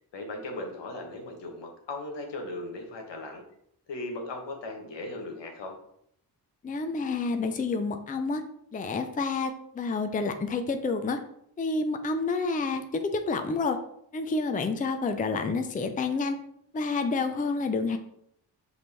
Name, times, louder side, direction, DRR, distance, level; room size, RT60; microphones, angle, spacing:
voice 1, 0.1-3.4 3.9-5.7, left 2 dB, 75° left, 3 dB, 1.1 m, -37 dB
voice 2, 6.6-8.4 8.7-11.2 11.6-12.8 13.1-13.8 14.1-16.4 16.7-18.0, left 3 dB, 20° left, 7 dB, 0.5 m, -29 dB
5.1 x 2.6 x 3.3 m, 0.71 s
supercardioid pair, 50°, 43 cm